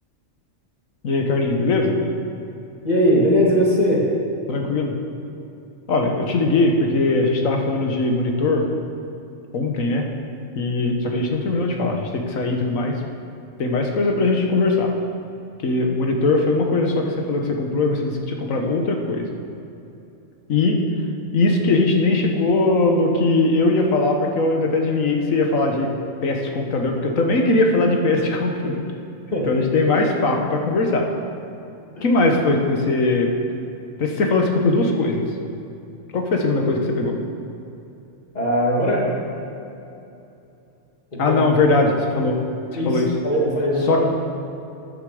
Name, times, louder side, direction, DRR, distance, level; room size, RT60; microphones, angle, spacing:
voice 1, 1.0-2.0 4.5-4.9 5.9-8.7 9.5-10.0 10.5-13.0 13.6-14.9 15.6-19.3 20.5-20.8 21.3-25.9 26.2-28.8 29.4-31.1 32.0-33.3 34.0-35.3 36.1-37.2 41.2-42.4 42.7-43.1 43.9-44.0, left 2 dB, 85° left, 2 dB, 1.6 m, -20 dB
voice 2, 2.8-4.0 29.3-29.4 32.0-32.1 38.3-39.1 41.2-41.4 42.7-44.0, equal, 30° left, -4 dB, 2.3 m, -19 dB
13.0 x 9.3 x 5.0 m, 2.8 s
omnidirectional pair, 1.4 m